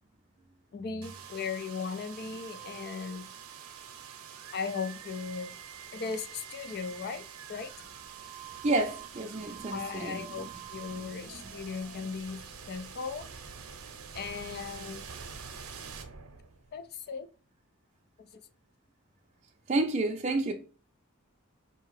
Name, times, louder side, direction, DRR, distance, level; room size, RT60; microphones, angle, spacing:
voice 1, 0.7-3.3 4.5-5.5 5.9-7.7 9.7-13.3 14.1-15.1 16.7-17.3 18.2-18.4, left 5 dB, 45° left, 0.4 m, -37 dB
sound 1, 1.0-16.9, right 7 dB, 85° right, 0.7 m, -46 dB
voice 2, 8.6-10.2 19.7-20.5, right 2 dB, 30° right, 0.5 m, -29 dB
4.5 x 2.8 x 3.1 m
head